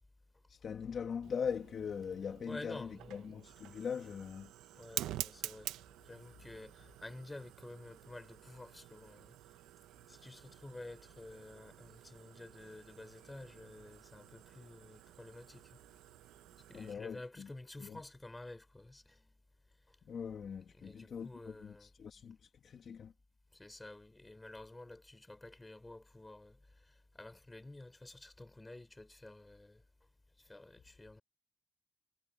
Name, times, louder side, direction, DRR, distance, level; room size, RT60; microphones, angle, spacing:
voice 1, 0.5-4.5 16.7-17.5 17.8-18.0 20.1-23.1, left 7 dB, 55° left, 2.1 m, -41 dB
Fire, 1.2-16.9, right 13 dB, 90° right, 0.9 m, -49 dB
voice 2, 2.5-3.3 4.7-5.7 6.1-9.4 10.1-15.8 16.7-19.3 20.7-21.9 23.5-29.8 30.4-31.2, left 2 dB, 15° left, 5.4 m, -51 dB
cardioid pair, 90°, 0 cm